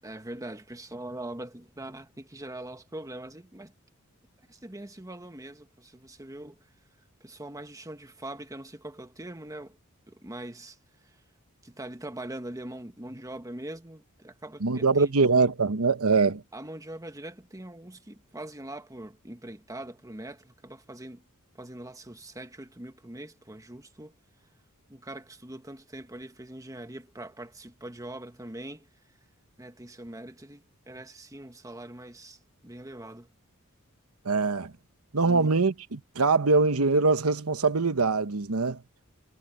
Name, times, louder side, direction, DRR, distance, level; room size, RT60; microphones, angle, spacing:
voice 1, 0.0-3.7 4.5-6.6 7.2-9.8 10.1-10.8 11.0-11.2 11.6-15.3 16.5-21.2 21.6-24.1 24.9-28.9 29.6-33.3 35.2-35.5, right 1 dB, 15° right, 1.4 m, -42 dB
voice 2, 14.6-16.4 34.2-34.7 35.1-38.8, right 4 dB, 80° right, 1.1 m, -23 dB
head